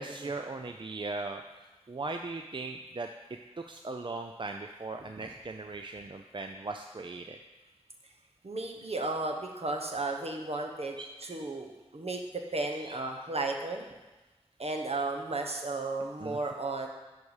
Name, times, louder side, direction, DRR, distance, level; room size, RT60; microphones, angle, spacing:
voice 1, 0.0-1.4 1.9-3.1 3.6-7.4 11.0-11.1 12.7-13.0 15.0-15.1 16.2-16.4, right 3 dB, 50° right, 5 dB, 0.4 m, -38 dB
voice 2, 8.4-11.0 11.2-13.9 14.6-16.9, right 2 dB, 70° right, 2 dB, 1.0 m, -34 dB
10.5 x 4.7 x 4.9 m, 1.1 s
wide cardioid pair, 60°, 11 cm